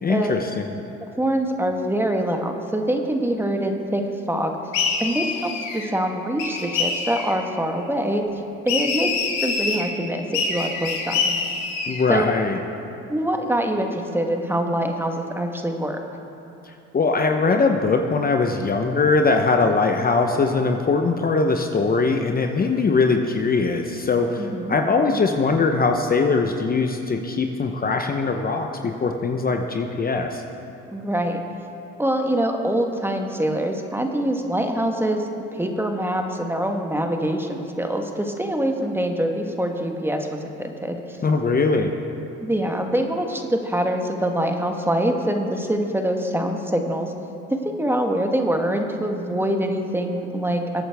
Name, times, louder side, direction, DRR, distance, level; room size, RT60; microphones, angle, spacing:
voice 1, 0.0-0.8 11.9-12.6 16.9-30.4 41.2-41.9, left 4 dB, 30° left, 4 dB, 0.9 m, -21 dB
voice 2, 1.2-4.0 4.3-4.5 5.0-8.2 8.6-9.1 9.4-11.3 12.1-12.4 13.1-16.0 24.4-24.8 30.9-31.4 32.0-41.2 42.4-47.1 47.6-50.8, right 1 dB, 5° right, 3 dB, 1.3 m, -24 dB
sound 1, 4.7-5.9 6.4-7.3 8.7-9.8 10.3-12.0, left 4 dB, 85° left, 1.8 m, -25 dB
22.0 x 8.8 x 3.5 m, 2.8 s
supercardioid pair, 75°, 30 cm